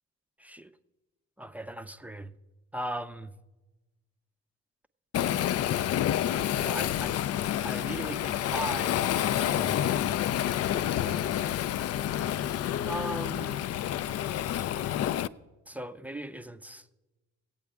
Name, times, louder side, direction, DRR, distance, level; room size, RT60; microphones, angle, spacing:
voice 1, 0.4-0.7 1.4-2.3 2.7-3.3 6.6-7.2 7.6-10.2 10.7-11.4 12.8-13.6 15.7-16.9, right 1 dB, 5° right, 0.5 m, -38 dB
Waves surf, 5.1-15.3, left 11 dB, 50° left, 0.4 m, -29 dB
17.0 x 8.5 x 3.5 m
supercardioid pair, 60°, 32 cm